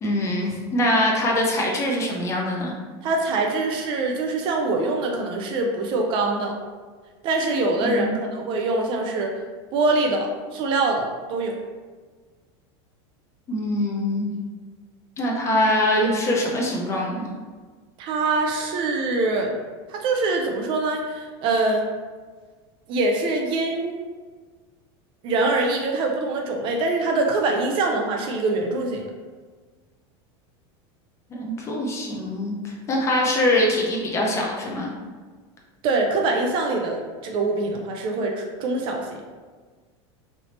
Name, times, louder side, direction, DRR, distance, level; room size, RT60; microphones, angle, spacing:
voice 1, 0.0-2.7 7.8-8.2 13.5-14.3 15.2-17.3 31.3-34.9, left 1 dB, 20° left, -1 dB, 0.5 m, -23 dB
voice 2, 3.0-6.6 7.2-9.3 9.7-11.6 18.0-19.6 19.9-21.9 22.9-24.0 25.2-29.0 35.8-39.1, right 2 dB, 40° right, 2 dB, 0.4 m, -24 dB
3.2 x 2.7 x 2.9 m, 1.4 s
supercardioid pair, 150°, 14 cm